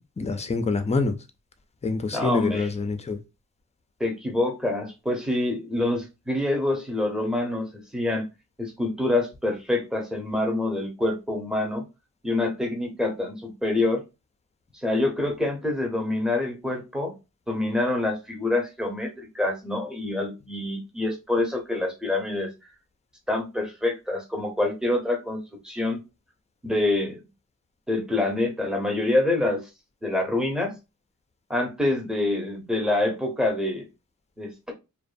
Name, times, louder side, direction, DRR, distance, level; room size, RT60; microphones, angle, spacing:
voice 1, 0.2-1.2 1.8-3.2, left 4 dB, 20° left, 0.4 m, -26 dB
voice 2, 2.1-2.7 4.0-8.3 8.6-11.8 12.2-14.0 14.7-17.1 17.5-22.5 23.3-26.0 26.6-27.2 27.9-29.7 30.0-30.8 31.5-33.9 34.4-34.7, left 2 dB, ahead, 0.8 m, -26 dB
2.5 x 2.2 x 2.5 m
cardioid pair, 70°, 34 cm